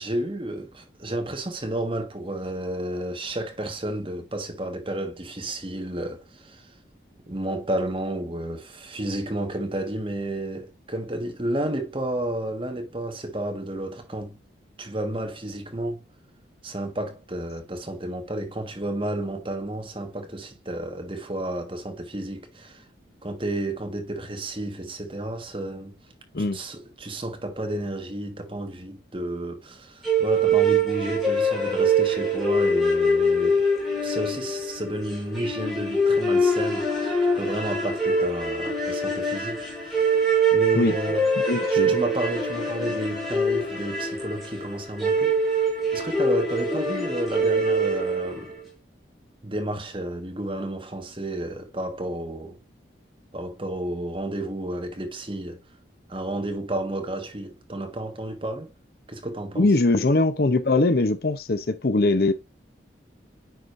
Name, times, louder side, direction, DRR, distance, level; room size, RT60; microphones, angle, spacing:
voice 1, 0.0-6.7 7.3-14.4 14.8-16.0 16.6-22.8 23.2-26.0 26.4-33.7 34.0-37.1 37.3-40.2 40.5-41.3 41.7-45.4 45.9-48.5 49.4-52.6 53.3-55.6 56.1-58.7 59.1-59.7, right 1 dB, 30° right, 1.4 m, -31 dB
sound 1, 30.0-48.5, right 1 dB, ahead, 3.1 m, -24 dB
voice 2, 41.5-42.0 59.6-62.3, left 2 dB, 55° left, 0.7 m, -21 dB
9.4 x 5.0 x 2.5 m
head